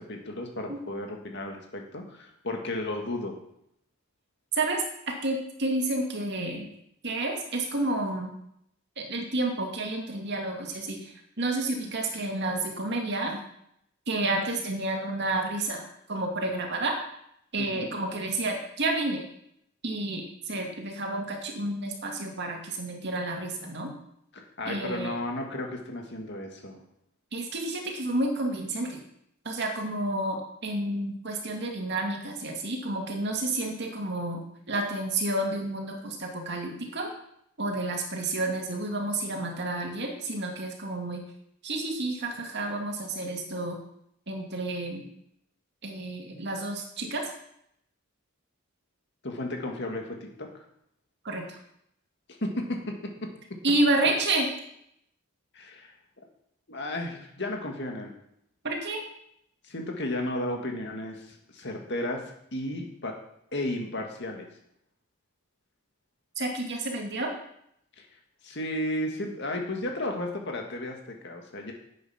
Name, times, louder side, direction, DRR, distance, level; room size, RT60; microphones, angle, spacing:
voice 1, 0.0-3.4 17.6-18.0 24.3-26.8 49.2-50.5 52.4-53.3 55.5-56.3 56.7-58.1 59.6-62.2 62.5-63.2 63.5-64.5 68.0-68.1 68.4-71.7, left 1 dB, 55° left, 2 dB, 2.0 m, -34 dB
voice 2, 4.5-6.7 7.0-8.3 9.0-13.4 14.1-17.0 17.5-19.2 19.8-23.9 24.6-25.2 27.3-29.0 29.4-37.1 37.6-41.2 41.6-43.8 44.3-45.1 45.8-47.3 51.2-51.6 53.6-54.5 58.6-59.0 66.4-67.3, right 2 dB, 55° right, 2 dB, 2.2 m, -30 dB
10.0 x 8.3 x 5.9 m, 0.74 s
head